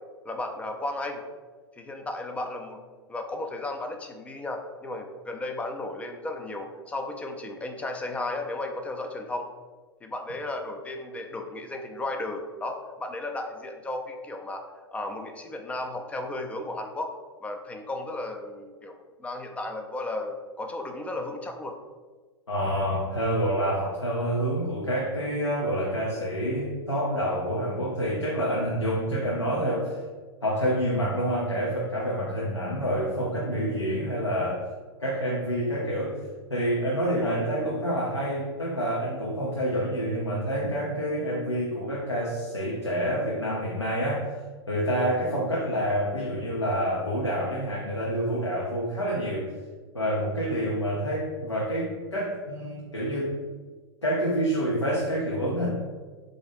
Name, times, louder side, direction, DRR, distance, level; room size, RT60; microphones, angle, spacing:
voice 1, 0.2-1.2 1.8-2.8 3.1-9.5 10.0-14.6 14.9-17.1 17.4-21.8 37.2-37.4, left 2 dB, 10° left, 4 dB, 0.3 m, -34 dB
voice 2, 22.5-30.0 30.4-34.7 35.0-36.2 36.5-44.3 44.7-49.5 49.9-53.4 54.0-55.7, equal, 90° left, -5 dB, 0.6 m, -27 dB
3.8 x 2.5 x 3.3 m, 1.4 s
figure-of-eight pair, 90°, 14 cm